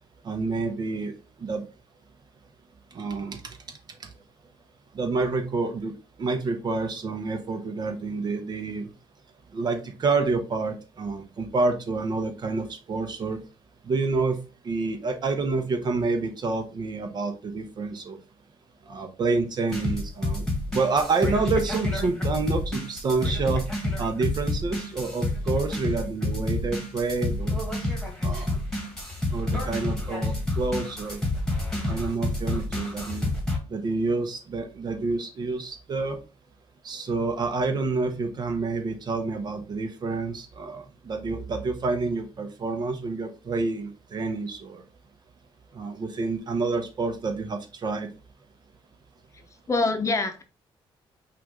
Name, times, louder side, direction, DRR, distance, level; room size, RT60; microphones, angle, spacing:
voice 1, 0.2-1.1 1.4-1.6 2.9-3.6 4.9-5.9 6.2-8.9 9.5-13.4 13.8-14.4 14.6-18.2 18.9-20.4 20.7-23.6 24.0-27.6 28.2-28.6 29.3-31.2 31.9-33.3 33.7-36.2 36.8-44.8 45.7-48.1, right 3 dB, 45° right, 7 dB, 0.9 m, -28 dB
sound 1, 19.7-33.6, left 1 dB, 5° left, 1.7 m, -28 dB
voice 2, 49.3-50.4, left 3 dB, 30° left, 6 dB, 0.8 m, -26 dB
5.7 x 2.6 x 3.6 m, 0.33 s
cardioid pair, 110°, 10 cm